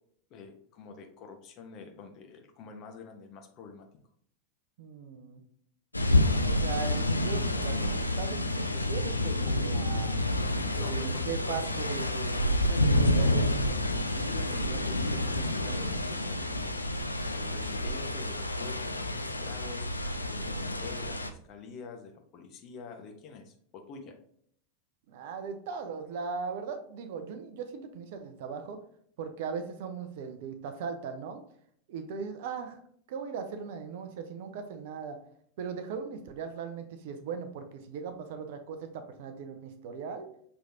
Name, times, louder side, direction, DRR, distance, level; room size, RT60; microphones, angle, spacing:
voice 1, 0.3-3.9 10.7-11.6 12.5-16.7 17.3-19.9 20.3-24.2, left 5 dB, 40° left, 4 dB, 0.9 m, -46 dB
voice 2, 4.8-5.4 6.4-10.2 10.7-12.5 13.0-13.6 25.1-28.8 29.2-31.4 31.9-32.8 33.1-35.2 35.6-40.3, right 6 dB, 55° right, 7 dB, 0.6 m, -38 dB
sound 1, 5.9-21.3, left 1 dB, 90° left, 0.3 m, -29 dB
5.8 x 3.2 x 2.7 m, 0.64 s
figure-of-eight pair, 90°, 0 cm